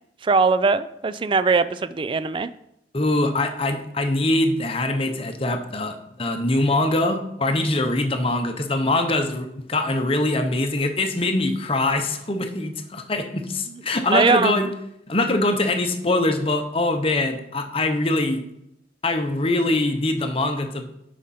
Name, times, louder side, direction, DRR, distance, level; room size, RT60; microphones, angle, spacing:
voice 1, 0.2-2.5 14.1-14.7, right 4 dB, 30° right, 14 dB, 0.3 m, -20 dB
voice 2, 2.9-14.7 15.1-18.4 19.0-20.8, left 2 dB, 35° left, 6 dB, 0.8 m, -23 dB
11.5 x 5.1 x 4.2 m, 0.80 s
head